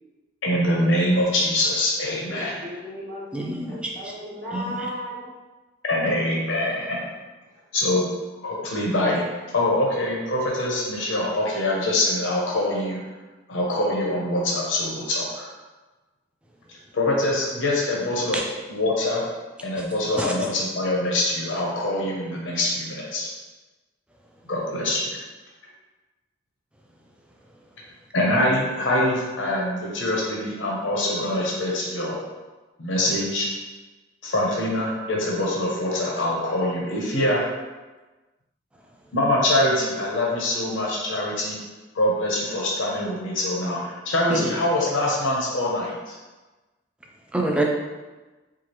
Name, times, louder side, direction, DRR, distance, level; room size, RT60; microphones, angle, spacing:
voice 1, 0.4-2.6 5.9-7.0 7.7-8.1 8.4-9.2 9.5-13.0 13.5-15.5 16.9-18.4 18.7-19.3 19.6-23.3 24.5-25.1 28.1-32.2 32.8-33.5 34.2-37.4 39.1-41.6 41.9-46.1, left 1 dB, 75° left, -3 dB, 0.8 m, -24 dB
voice 2, 2.3-5.3, equal, 55° right, -7 dB, 1.0 m, -35 dB
voice 3, 3.3-3.9 4.5-4.9 20.2-20.3 44.3-44.5 47.3-47.6, right 1 dB, 5° right, 0 dB, 0.3 m, -26 dB
4.7 x 2.4 x 2.9 m, 1.2 s
head